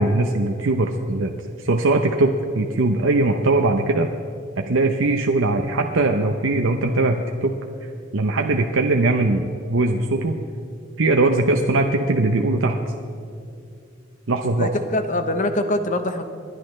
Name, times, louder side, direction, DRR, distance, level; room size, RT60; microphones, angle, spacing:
voice 1, 0.0-1.3 1.6-4.1 4.6-7.6 8.1-10.4 11.0-12.8 14.3-14.7, right 2 dB, 90° right, 3 dB, 0.7 m, -20 dB
voice 2, 14.6-16.3, left 1 dB, 40° left, 7 dB, 0.9 m, -23 dB
29.5 x 11.0 x 3.3 m, 2.4 s
head